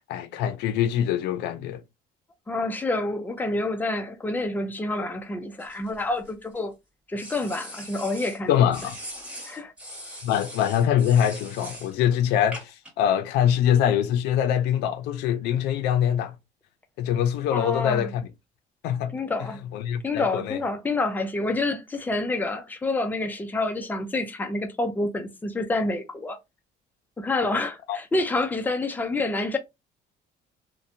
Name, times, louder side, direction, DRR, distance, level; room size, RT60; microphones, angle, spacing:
voice 1, 0.1-1.8 8.5-9.0 10.2-16.3 17.0-18.3 18.8-19.2 19.7-20.6 27.9-28.0, left 9 dB, 90° left, 0.4 m, -24 dB
voice 2, 2.5-6.7 7.1-8.5 9.4-9.7 17.5-18.1 19.1-19.6 20.0-26.4 27.2-29.6, left 2 dB, 10° left, 0.5 m, -28 dB
sound 1, 5.6-6.6 7.2-8.4 8.7-11.9 12.5-12.9, equal, 5° right, 1.4 m, -41 dB
2.6 x 2.1 x 2.5 m
cardioid pair, 110°, 17 cm